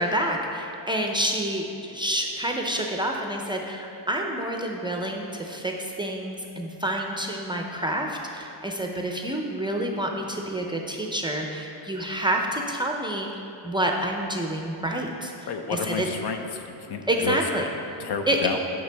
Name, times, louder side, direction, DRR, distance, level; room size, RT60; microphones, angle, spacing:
voice 1, 0.0-16.1 17.1-17.7 18.3-18.4, right 1 dB, 10° right, 1 dB, 0.5 m, -28 dB
voice 2, 15.5-17.4 18.0-18.6, left 6 dB, 60° left, 5 dB, 0.7 m, -31 dB
11.0 x 6.0 x 3.4 m, 2.7 s
cardioid pair, 125°, 46 cm